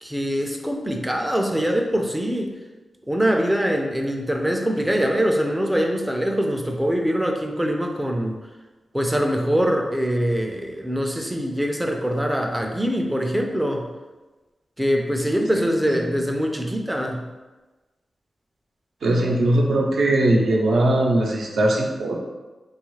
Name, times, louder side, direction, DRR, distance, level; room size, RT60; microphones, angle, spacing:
voice 1, 0.0-2.5 3.1-8.4 8.9-13.9 14.8-17.2, equal, 10° right, 2 dB, 0.4 m, -23 dB
voice 2, 19.0-22.2, right 1 dB, 80° right, -1 dB, 0.5 m, -20 dB
3.4 x 2.3 x 3.1 m, 1.2 s
wide cardioid pair, 85°, 0 cm